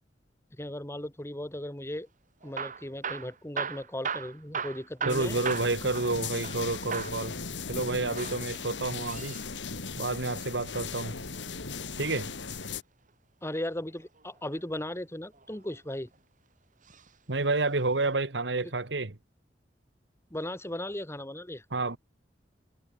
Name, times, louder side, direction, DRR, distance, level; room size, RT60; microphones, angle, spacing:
voice 1, 0.6-2.1 2.4-5.4 13.4-16.1 18.6-18.7 20.3-21.6, left 1 dB, 15° left, 2.8 m, -37 dB
Hammer / Drill, 2.4-6.6 6.9-7.2 8.0-9.5 11.2-12.5 14.2-14.6 15.3-16.2 16.8-17.1 17.4-17.5 18.1-18.2, right 6 dB, 45° right, 4.1 m, -37 dB
voice 2, 5.0-7.4 7.7-9.4 10.0-11.1 12.0-12.3 17.3-19.1 21.7-22.0, right 3 dB, 70° right, 1.6 m, -29 dB
sound 1, 5.1-12.8, left 5 dB, 90° left, 2.1 m, -38 dB
head